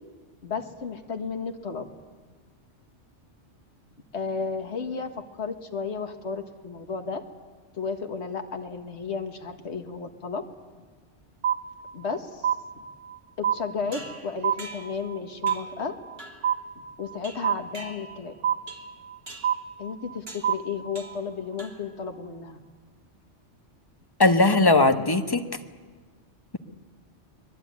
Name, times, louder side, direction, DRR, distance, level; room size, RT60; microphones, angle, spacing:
voice 1, 0.4-1.9 4.1-7.2 7.7-10.4 11.9-12.5 12.8-12.9 13.4-16.0 17.0-18.3 19.8-22.6, left 5 dB, 60° left, 5 dB, 1.9 m, -33 dB
sound 1, 11.4-12.1 12.4-13.2 13.4-14.2 14.4-15.2 15.4-16.2 16.4-17.2 17.4-18.2 18.4-19.2 19.4-20.2 20.4-21.2, right 9 dB, 90° right, 1.5 m, -27 dB
sound 2, 13.9-15.0 15.5-15.8 16.2-16.5 17.2-18.3 18.7-19.0 19.3-19.6 20.3-20.6 21.0-21.3 21.6-22.0, right 2 dB, 55° right, 3.0 m, -44 dB
voice 2, 24.2-25.4, left 2 dB, 20° left, 6 dB, 1.3 m, -19 dB
25.0 x 20.0 x 9.6 m, 1.5 s
omnidirectional pair, 1.3 m